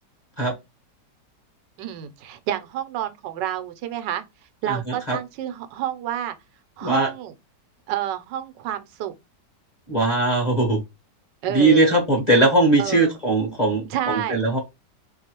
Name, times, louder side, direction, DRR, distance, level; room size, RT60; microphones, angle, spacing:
voice 1, 1.8-4.2 4.6-6.3 6.8-7.3 7.9-9.1 11.4-12.0 12.8-13.1 13.9-14.4, right 11 dB, 90° right, 1.3 m, -29 dB
voice 2, 4.7-5.2 6.8-7.1 9.9-10.8 11.5-14.6, right 2 dB, 30° left, 0.9 m, -20 dB
3.8 x 3.0 x 2.8 m
omnidirectional pair, 1.9 m